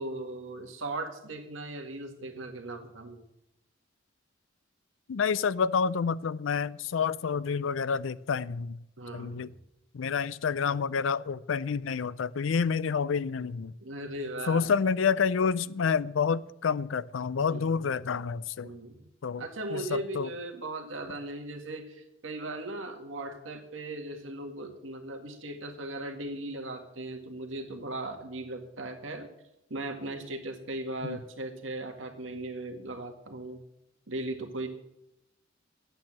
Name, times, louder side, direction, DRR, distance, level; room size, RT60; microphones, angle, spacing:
voice 1, 0.0-3.2 9.0-9.4 13.8-14.6 17.4-17.9 18.6-19.1 19.4-29.3 29.7-33.6 34.1-34.7, right 2 dB, 80° right, 1.8 m, -38 dB
voice 2, 5.1-8.8 9.1-9.5 9.9-13.7 14.5-18.7 19.2-19.4 19.7-20.3 31.0-31.2, left 6 dB, 75° left, 0.4 m, -28 dB
12.0 x 8.9 x 7.4 m
head